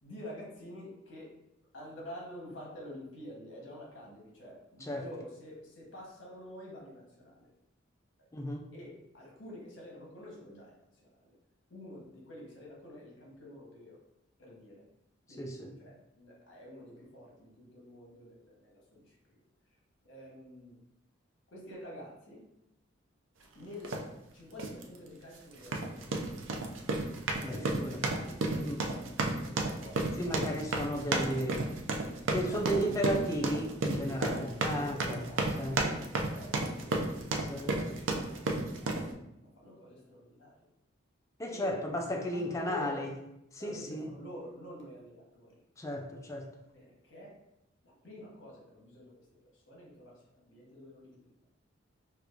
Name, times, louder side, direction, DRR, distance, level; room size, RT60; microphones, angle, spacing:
voice 1, 0.0-1.3 1.7-7.5 8.2-8.3 8.7-11.3 11.7-14.0 14.4-14.8 15.3-19.2 20.0-20.8 21.5-22.4 23.5-24.0 24.3-26.7 27.3-31.7 32.3-33.0 33.8-38.0 38.4-39.0 39.4-40.7 41.5-41.9 42.3-43.1 43.6-45.6 46.7-47.4 47.8-49.1 49.5-51.3, left 1 dB, 70° left, -3 dB, 1.1 m, -49 dB
voice 2, 8.3-8.7 15.4-15.7 27.4-28.0 28.6-28.9 30.2-31.7 32.3-35.3 35.6-35.7 37.5-37.7 41.4-43.1 43.5-44.1 45.8-46.5, equal, 15° left, 2 dB, 0.3 m, -34 dB
sound 1, 23.8-24.1 24.6-24.8 25.6-39.1, right 2 dB, 75° right, 0.4 m, -32 dB
4.5 x 2.3 x 2.5 m, 0.84 s
head